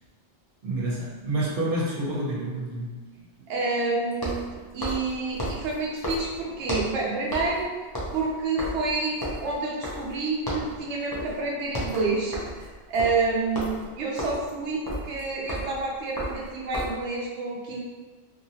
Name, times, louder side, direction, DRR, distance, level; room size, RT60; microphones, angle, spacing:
voice 1, 0.6-3.0, right 1 dB, 55° right, -5 dB, 1.0 m, -28 dB
sound 1, 0.8-0.9 4.1-7.0 7.3-7.6 7.9-10.2 10.5-10.8 11.1-11.4 11.6-17.1, equal, 25° left, 0.6 m, -34 dB
voice 2, 3.5-4.4 4.7-7.7 8.1-9.1 9.4-17.8, right 3 dB, 85° right, -3 dB, 0.9 m, -28 dB
3.1 x 2.8 x 2.7 m, 1.3 s
omnidirectional pair, 1.2 m